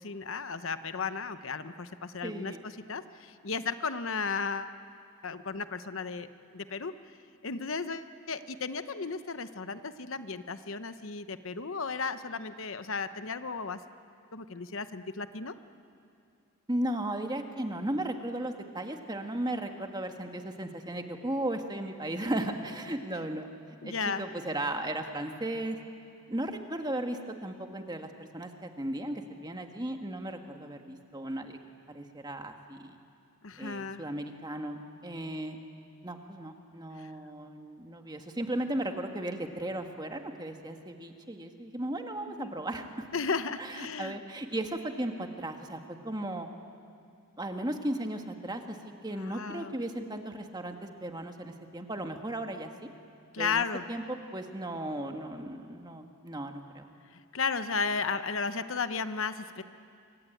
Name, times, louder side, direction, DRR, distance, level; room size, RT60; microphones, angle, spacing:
voice 1, 0.0-2.5 2.9-4.8 5.2-6.3 6.5-6.9 7.4-13.8 14.3-15.5 23.8-24.3 33.4-34.0 37.0-37.1 42.3-42.5 43.1-44.2 49.1-49.7 53.3-53.8 57.1-59.6, left 5 dB, 65° left, 11 dB, 0.9 m, -34 dB
voice 2, 2.2-2.6 16.7-23.5 23.8-25.8 26.3-31.6 31.9-33.0 33.6-35.6 36.0-43.1 43.6-46.5 47.4-48.8 49.0-52.9 53.4-56.9, right 1 dB, 20° right, 4 dB, 1.6 m, -36 dB
26.0 x 24.5 x 9.1 m, 2.4 s
head